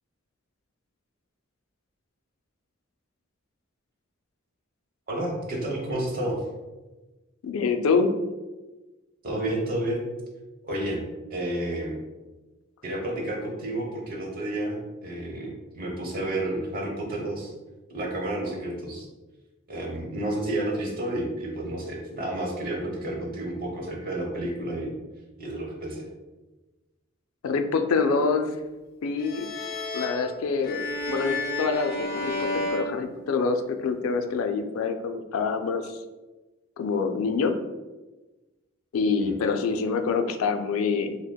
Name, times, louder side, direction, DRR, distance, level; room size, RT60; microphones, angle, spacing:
voice 1, 5.1-6.4 9.2-10.0 10.6-11.0 11.3-12.0 12.8-17.5 17.9-19.1 19.7-25.0 25.4-26.0 39.2-39.3, right 1 dB, 45° right, -1 dB, 0.9 m, -30 dB
voice 2, 7.4-8.1 27.4-28.5 29.0-29.5 29.9-36.0 36.8-37.5 38.9-41.2, left 4 dB, 90° left, 6 dB, 0.4 m, -26 dB
sound 1, 29.2-33.8, left 1 dB, 50° left, 0.7 m, -32 dB
6.2 x 2.1 x 2.2 m, 1.1 s
head